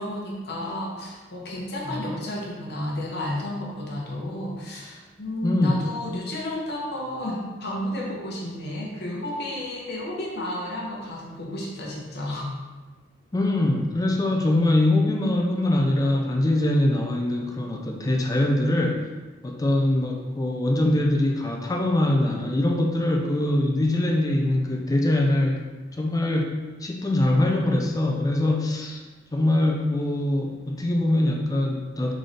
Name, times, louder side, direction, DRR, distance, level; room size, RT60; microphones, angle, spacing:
voice 1, 0.0-12.5, left 1 dB, 60° left, -3 dB, 1.0 m, -32 dB
voice 2, 5.4-5.8 13.3-19.0 19.4-25.6 26.0-29.0 29.3-32.1, left 1 dB, 20° left, 1 dB, 0.4 m, -23 dB
3.9 x 3.8 x 3.3 m, 1.3 s
head